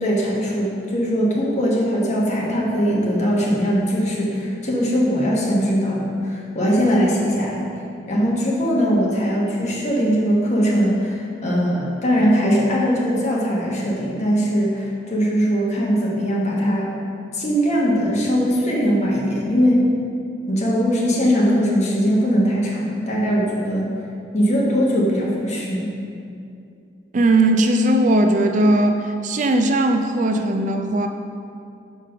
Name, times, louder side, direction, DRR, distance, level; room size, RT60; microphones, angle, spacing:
voice 1, 0.0-7.6 8.1-16.9 17.3-19.9 20.5-23.9 24.3-25.9, equal, 40° left, -4 dB, 1.3 m, -20 dB
voice 2, 27.1-31.1, right 1 dB, 45° right, 5 dB, 0.4 m, -18 dB
5.2 x 5.0 x 5.5 m, 2.5 s
head